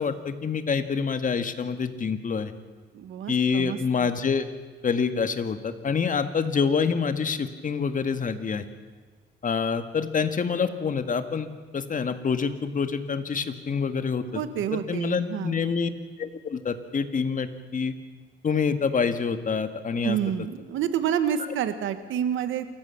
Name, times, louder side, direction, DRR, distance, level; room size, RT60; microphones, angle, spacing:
voice 1, 0.0-2.5 3.3-4.5 4.8-8.7 9.4-11.5 11.7-14.4 14.7-15.9 16.2-17.9 18.4-20.2, left 5 dB, 40° left, 9 dB, 1.8 m, -26 dB
voice 2, 2.9-4.1 14.4-15.6 20.0-22.7, right 9 dB, 80° right, 10 dB, 1.7 m, -29 dB
27.5 x 15.0 x 7.1 m, 1.4 s
cardioid pair, 90°, 20 cm